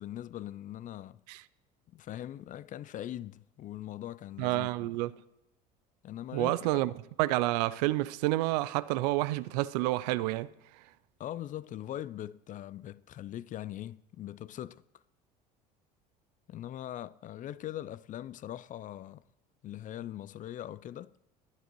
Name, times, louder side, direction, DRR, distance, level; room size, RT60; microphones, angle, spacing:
voice 1, 0.0-1.2 1.9-4.9 6.0-6.8 11.2-14.8 16.5-19.2 19.6-21.1, left 12 dB, 40° left, 0.4 m, -41 dB
voice 2, 4.4-5.1 6.3-6.9 7.2-10.5, right 18 dB, 70° right, 0.5 m, -29 dB
20.5 x 10.0 x 3.0 m
hypercardioid pair, 70°, 21 cm